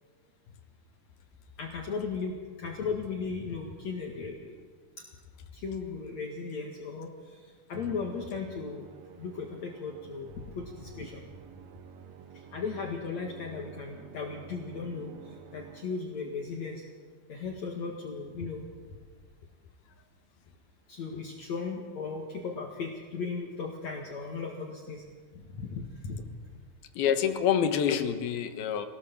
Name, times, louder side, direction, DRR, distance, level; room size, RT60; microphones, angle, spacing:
voice 1, 1.6-4.6 5.0-5.1 5.5-7.4 7.7-8.9 9.2-11.2 12.3-16.8 17.3-18.6 20.9-25.0 25.4-26.3, left 5 dB, 55° left, 0 dB, 2.8 m, -36 dB
Musical instrument, 7.7-16.3, right 7 dB, 65° right, 1.9 m, -50 dB
voice 2, 26.9-28.9, left 8 dB, 85° left, 8 dB, 3.2 m, -27 dB
24.5 x 18.5 x 7.4 m, 1.6 s
omnidirectional pair, 4.3 m